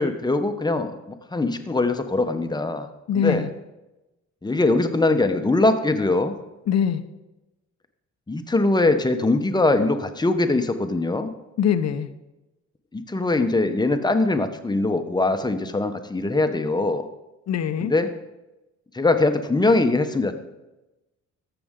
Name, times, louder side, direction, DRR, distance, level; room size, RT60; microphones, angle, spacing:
voice 1, 0.0-2.9 3.1-3.5 4.4-6.3 8.3-11.3 12.9-17.1 17.8-18.1 18.9-20.3, left 2 dB, 15° left, 8 dB, 0.9 m, -22 dB
voice 2, 3.1-3.5 6.7-7.0 11.6-12.1 17.5-17.9, left 8 dB, 60° left, 11 dB, 0.8 m, -22 dB
13.5 x 6.9 x 3.7 m, 1.0 s
cardioid pair, 90°, 30 cm